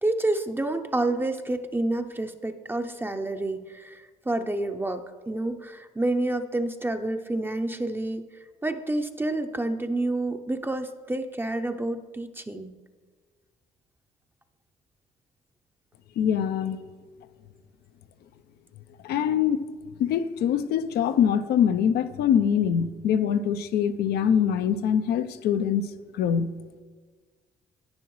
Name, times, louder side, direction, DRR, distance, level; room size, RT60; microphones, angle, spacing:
voice 1, 0.0-8.2 8.6-12.7, right 2 dB, 15° right, 7 dB, 0.6 m, -29 dB
voice 2, 16.2-16.8 19.0-19.6 20.0-25.8 26.2-26.5, left 8 dB, 75° left, 11 dB, 0.5 m, -23 dB
10.5 x 9.3 x 3.1 m, 1.4 s
supercardioid pair, 65°, 17 cm